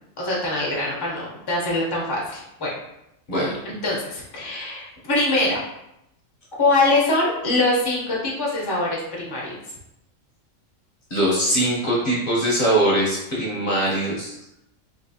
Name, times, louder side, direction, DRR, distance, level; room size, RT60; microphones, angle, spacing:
voice 1, 0.2-2.7 3.6-5.6 6.6-9.6, left 2 dB, 25° left, -4 dB, 0.7 m, -23 dB
voice 2, 11.1-14.3, right 1 dB, 45° left, -5 dB, 1.0 m, -21 dB
3.8 x 2.8 x 2.7 m, 0.83 s
omnidirectional pair, 1.4 m